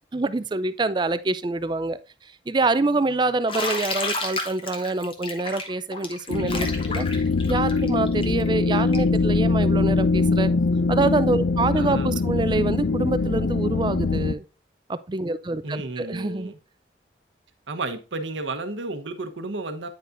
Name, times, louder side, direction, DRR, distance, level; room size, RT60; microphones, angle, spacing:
voice 1, 0.1-7.1 7.5-10.5 10.9-14.4 14.9-16.5, right 3 dB, 25° right, 0.4 m, -26 dB
Bathtub (filling or washing), 3.5-9.2, left 3 dB, 30° left, 1.1 m, -31 dB
sound 1, 6.3-14.3, left 3 dB, 80° left, 0.5 m, -23 dB
voice 2, 11.7-12.1 12.5-12.6 15.6-16.6 17.7-19.9, right 2 dB, 90° right, 1.0 m, -32 dB
9.2 x 5.3 x 2.5 m
head